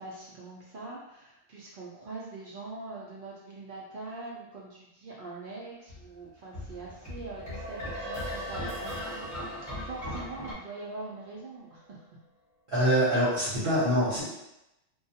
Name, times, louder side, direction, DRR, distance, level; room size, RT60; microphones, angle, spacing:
voice 1, 0.0-9.3 9.8-12.0, right 3 dB, 65° right, -4 dB, 0.5 m, -43 dB
sound 1, 5.9-10.5, left 1 dB, 20° left, 0.6 m, -39 dB
sound 2, 7.3-11.8, equal, 85° right, 1.0 m, -41 dB
voice 2, 12.7-14.2, equal, 50° right, -9 dB, 0.9 m, -25 dB
2.3 x 2.2 x 2.7 m, 0.88 s
omnidirectional pair, 1.4 m